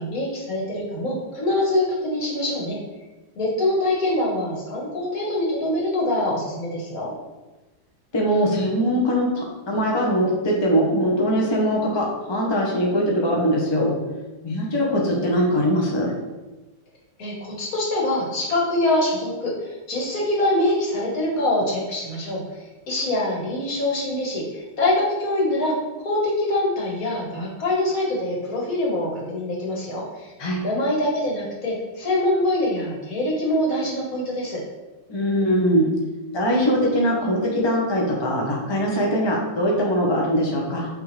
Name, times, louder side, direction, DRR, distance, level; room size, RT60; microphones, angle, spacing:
voice 1, 0.0-2.8 3.4-7.1 17.2-22.4 22.9-25.7 26.0-30.3 30.6-34.6, left 1 dB, 50° left, -3 dB, 1.8 m, -24 dB
voice 2, 8.1-14.0 14.4-16.1 30.4-30.6 35.1-35.9 36.3-40.9, equal, 25° left, -2 dB, 0.5 m, -21 dB
8.6 x 3.6 x 3.3 m, 1.1 s
omnidirectional pair, 2.1 m